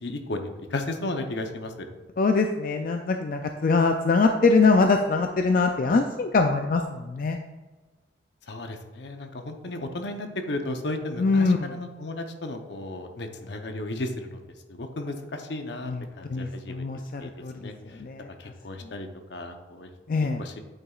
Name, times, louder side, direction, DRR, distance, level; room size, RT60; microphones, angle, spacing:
voice 1, 0.0-1.9 8.5-14.4 14.7-16.8 17.2-17.3 17.6-18.0 18.4-19.9 20.4-20.6, left 2 dB, 75° left, 5 dB, 0.8 m, -34 dB
voice 2, 2.2-7.4 11.2-11.7 15.8-18.5 18.8-18.9 20.1-20.4, left 4 dB, 50° left, 5 dB, 0.4 m, -23 dB
9.0 x 6.6 x 2.4 m, 1.2 s
head